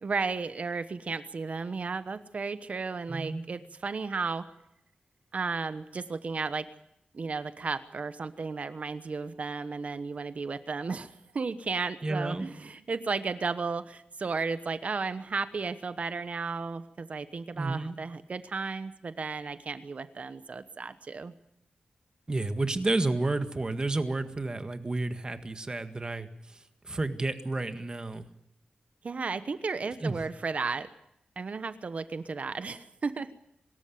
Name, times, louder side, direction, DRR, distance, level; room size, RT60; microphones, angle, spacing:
voice 1, 0.0-4.5 5.3-6.7 7.1-21.3 29.0-30.9 31.4-33.4, right 4 dB, 55° right, 12 dB, 1.1 m, -34 dB
voice 2, 3.1-3.4 12.0-12.5 17.6-18.0 22.3-28.2 30.0-30.2, right 2 dB, 30° right, 9 dB, 1.7 m, -31 dB
24.5 x 13.5 x 9.4 m, 0.78 s
wide cardioid pair, 105°, 3 cm